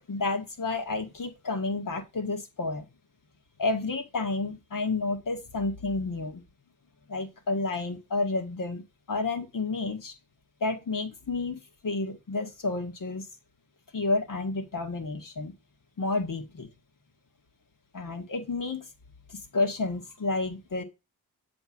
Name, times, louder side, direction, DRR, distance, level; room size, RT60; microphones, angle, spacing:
voice 1, 0.1-2.9 3.6-6.4 7.1-8.8 9.1-10.1 10.6-13.3 13.9-15.5 16.0-16.7 17.9-18.9 19.3-20.8, left 3 dB, 50° left, 5 dB, 2.0 m, -30 dB
7.9 x 3.5 x 6.0 m, 0.26 s
cardioid pair, 50°, 40 cm